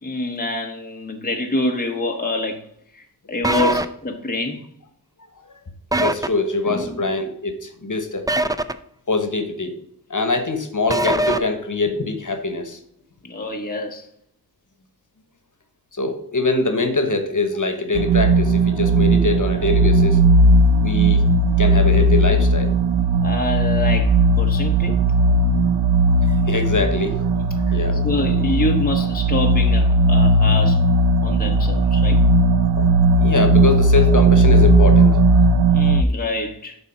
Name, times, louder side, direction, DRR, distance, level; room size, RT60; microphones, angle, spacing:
voice 1, 0.0-2.6 2.9-4.7 6.7-7.0 13.2-14.1 23.2-25.0 27.4-30.9 31.2-32.2 35.7-36.8, left 2 dB, 20° left, 0.9 m, -26 dB
sound 1, 3.4-3.9 5.9-6.3 8.3-8.7 10.9-11.4, right 1 dB, 10° right, 0.4 m, -20 dB
voice 2, 6.0-8.3 9.1-9.7 10.1-12.8 15.9-20.2 20.8-21.2 21.6-22.8 25.5-25.6 26.3-27.3 27.7-28.0 32.8-32.9 33.2-35.5, left 3 dB, 50° left, 1.1 m, -23 dB
sound 2, 17.9-36.0, right 2 dB, 85° right, 0.6 m, -16 dB
6.9 x 4.2 x 5.8 m
wide cardioid pair, 60°, 40 cm